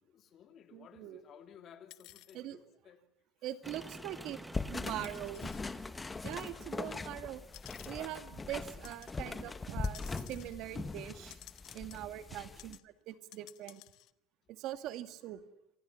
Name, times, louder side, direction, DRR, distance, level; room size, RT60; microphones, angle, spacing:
voice 1, 0.0-3.0 3.9-4.5 12.2-12.6, left 8 dB, 40° left, 2.8 m, -58 dB
voice 2, 0.7-1.2 2.3-2.6 3.4-4.4 4.7-5.5 6.2-7.4 7.9-11.4 11.7-13.8 14.5-15.4, right 12 dB, 55° right, 2.1 m, -42 dB
sound 1, 1.9-2.4 3.5-3.6 5.0-5.6 6.4-6.6 7.4-8.2 8.8-9.2 9.8-12.3 12.6-12.8 13.1-14.1, left 18 dB, 60° left, 1.1 m, -55 dB
sound 2, 3.6-9.3, right 1 dB, 5° right, 1.4 m, -52 dB
sound 3, 4.5-12.8, left 3 dB, 15° left, 1.2 m, -41 dB
28.0 x 25.5 x 7.3 m
cardioid pair, 155°, 0 cm